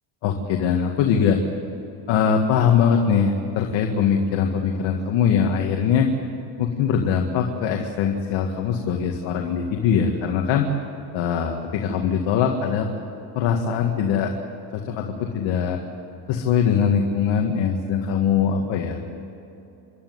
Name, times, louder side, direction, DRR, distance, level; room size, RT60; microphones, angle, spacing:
voice 1, 0.2-1.4 2.1-6.1 6.6-10.7 11.1-12.9 13.3-14.3 14.7-15.8 16.3-19.1, left 7 dB, 70° left, 3 dB, 2.0 m, -22 dB
27.0 x 11.5 x 9.6 m, 3.0 s
cardioid pair, 120°, 47 cm